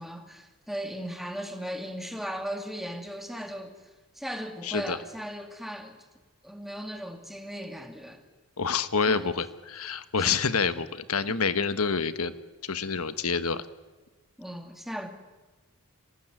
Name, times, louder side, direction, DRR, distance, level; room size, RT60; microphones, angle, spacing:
voice 1, 0.0-3.8 4.1-6.0 6.4-8.2 9.1-9.3 10.2-10.4 11.1-11.4 14.4-15.1, equal, ahead, 2.4 m, -37 dB
voice 2, 4.6-5.0 8.6-12.4 12.6-13.6, left 5 dB, 80° left, 1.4 m, -27 dB
26.0 x 19.0 x 9.2 m
head